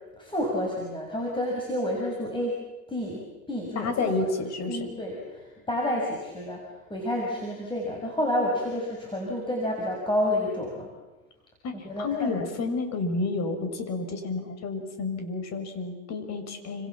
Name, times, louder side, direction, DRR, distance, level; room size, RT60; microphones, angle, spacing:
voice 1, 0.2-2.6 2.9-4.3 4.7-10.9 11.8-12.4, left 1 dB, 10° left, -1 dB, 6.4 m, -30 dB
voice 2, 3.7-4.8 11.6-16.9, left 3 dB, 40° left, 7 dB, 6.1 m, -30 dB
30.0 x 27.0 x 7.3 m, 1.1 s
supercardioid pair, 125°, 42 cm